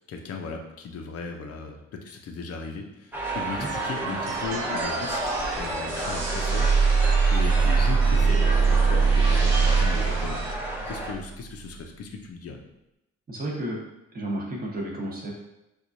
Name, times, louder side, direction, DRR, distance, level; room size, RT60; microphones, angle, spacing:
voice 1, 0.1-7.0 7.3-10.4 10.9-12.6, left 4 dB, 50° left, 3 dB, 0.6 m, -37 dB
sound 1, 3.1-11.1, right 1 dB, 5° right, 0.7 m, -32 dB
sound 2, 3.6-10.6, right 4 dB, 60° right, 0.6 m, -38 dB
sound 3, 5.9-11.2, right 5 dB, 85° right, 0.9 m, -21 dB
voice 2, 13.3-13.8 14.1-15.3, right 1 dB, 30° right, -2 dB, 1.0 m, -32 dB
4.5 x 2.4 x 2.6 m, 0.91 s
cardioid pair, 90°, 30 cm